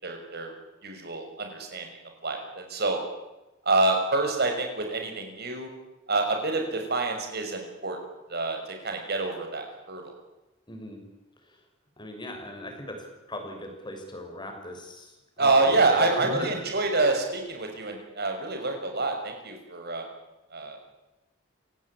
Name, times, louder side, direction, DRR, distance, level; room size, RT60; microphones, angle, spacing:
voice 1, 0.0-0.5 0.8-1.9 2.2-3.0 3.6-5.7 6.1-8.0 8.3-8.6 8.8-10.1 15.4-20.0 20.5-20.8, right 3 dB, 50° right, 4 dB, 6.5 m, -27 dB
voice 2, 10.7-11.0 12.0-16.5, left 1 dB, 20° left, 3 dB, 6.4 m, -38 dB
28.0 x 18.0 x 8.9 m, 1.0 s
head